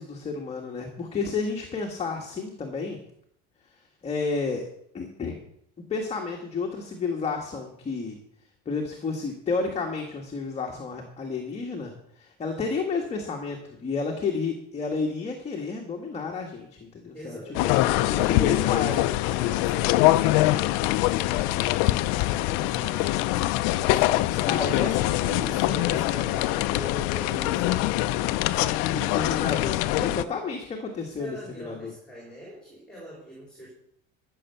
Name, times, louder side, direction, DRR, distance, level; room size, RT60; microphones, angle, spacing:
voice 1, 0.0-3.0 4.0-4.6 4.9-5.4 5.9-8.2 8.6-17.8 18.1-19.0 24.4-25.1 25.6-26.0 28.9-31.9, left 4 dB, 20° left, 1 dB, 1.6 m, -31 dB
voice 2, 17.1-21.8 22.1-23.3 23.7-29.1 30.2-30.3 31.2-33.7, equal, 5° left, -4 dB, 4.3 m, -42 dB
sound 1, 17.5-30.2, left 16 dB, 70° left, 0.6 m, -24 dB
14.0 x 6.7 x 6.9 m, 0.71 s
cardioid pair, 155°, 29 cm